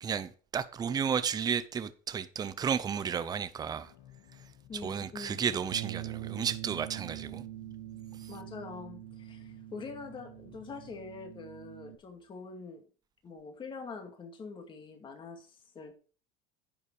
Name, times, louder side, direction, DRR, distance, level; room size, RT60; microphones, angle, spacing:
voice 1, 0.0-3.9 4.8-7.4 8.2-8.3, right 7 dB, 20° right, 0.7 m, -33 dB
sound 1, 3.6-12.2, left 11 dB, 80° left, 2.3 m, -59 dB
voice 2, 4.7-5.4 8.3-12.8 13.2-15.9, left 4 dB, 25° left, 2.3 m, -44 dB
Bass guitar, 5.7-12.0, right 15 dB, 80° right, 0.9 m, -44 dB
10.5 x 7.2 x 4.8 m
cardioid pair, 140°, 19 cm